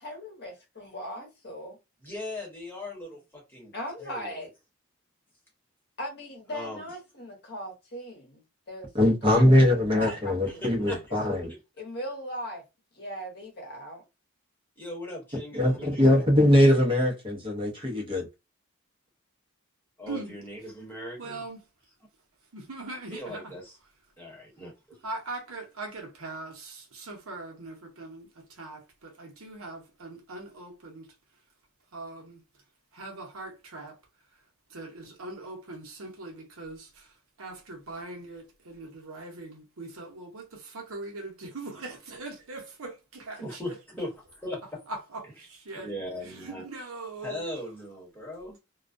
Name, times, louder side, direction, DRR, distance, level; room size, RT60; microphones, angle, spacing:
voice 1, 0.0-1.8 3.7-4.5 6.0-8.4 8.7-10.7 11.1-11.3 11.8-12.6 12.9-14.0, equal, 50° left, 0.9 m, -39 dB
voice 2, 2.0-3.7 4.0-4.4 6.5-6.8 10.0-10.2 10.5-11.2 14.8-16.2 20.0-21.4 23.1-23.8 24.2-25.0 43.4-44.8 45.2-45.3 45.8-46.6 47.2-48.6, left 1 dB, 10° left, 1.1 m, -39 dB
voice 3, 8.9-11.5 15.5-18.3, left 1 dB, 25° right, 0.8 m, -21 dB
voice 4, 21.2-21.6 22.5-23.5 25.0-31.1 31.9-32.4 32.9-34.0 34.7-37.1 37.4-43.7 44.9-45.9 46.2-47.4, right 2 dB, 70° right, 0.8 m, -41 dB
2.3 x 2.2 x 2.4 m
head